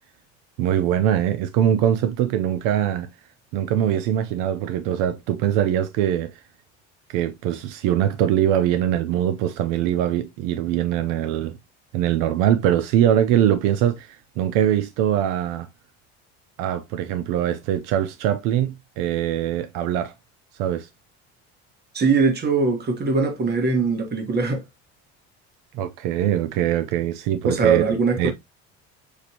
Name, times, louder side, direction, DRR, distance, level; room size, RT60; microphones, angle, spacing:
voice 1, 0.6-3.1 3.5-6.3 7.1-11.6 11.9-15.7 16.6-20.1 20.6-20.9 25.7-27.9 28.2-28.3, right 10 dB, 75° right, 0.5 m, -22 dB
voice 2, 21.9-24.6 27.4-28.3, right 4 dB, 30° right, 1.3 m, -21 dB
6.4 x 2.5 x 2.7 m
cardioid pair, 120°, 32 cm